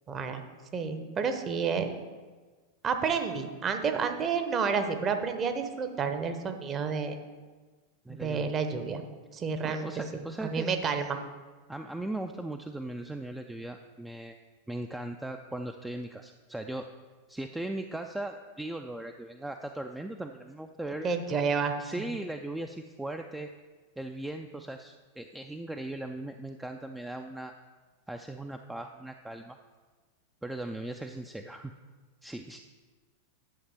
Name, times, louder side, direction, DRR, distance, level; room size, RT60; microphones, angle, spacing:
voice 1, 0.1-0.4 0.7-1.9 2.8-7.2 8.1-9.0 9.3-9.9 10.4-11.2 21.0-21.7, right 5 dB, 25° right, 7 dB, 0.8 m, -30 dB
voice 2, 8.1-8.5 9.6-10.7 11.7-14.4 14.7-16.9 17.3-21.1 21.8-23.5 24.0-27.5 28.1-29.6 30.4-31.7 32.2-32.6, right 1 dB, 5° right, 5 dB, 0.3 m, -38 dB
10.5 x 6.4 x 3.5 m, 1.4 s
figure-of-eight pair, 90°, 0 cm